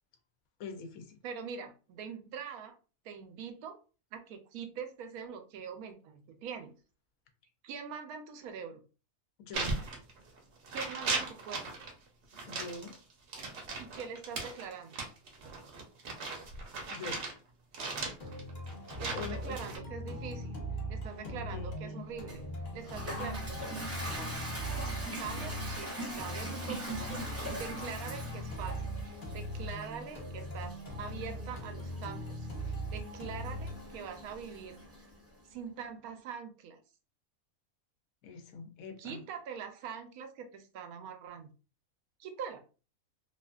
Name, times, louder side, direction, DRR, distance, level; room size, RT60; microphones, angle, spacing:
voice 1, 0.6-1.2 9.4-9.8 12.4-13.0 16.9-17.2 19.1-19.6 21.2-22.1 38.2-39.2, left 5 dB, 75° left, 6 dB, 1.0 m, -44 dB
voice 2, 1.2-2.7 3.0-3.8 4.1-6.7 7.6-8.8 10.7-11.8 13.8-15.0 19.0-20.6 20.9-22.4 22.7-24.3 25.2-34.8 35.5-36.8 39.0-41.5 42.2-42.6, right 7 dB, 80° right, 6 dB, 1.0 m, -43 dB
sound 1, 9.5-10.4 10.6-11.9 12.3-17.4 17.7-19.8, right 3 dB, 60° right, 0.9 m, -38 dB
sound 2, 18.2-36.2, equal, 40° left, 0.6 m, -41 dB
Toilet flush, 22.3-35.1, right 1 dB, 20° right, 0.4 m, -42 dB
2.7 x 2.4 x 2.3 m, 0.35 s
omnidirectional pair, 1.5 m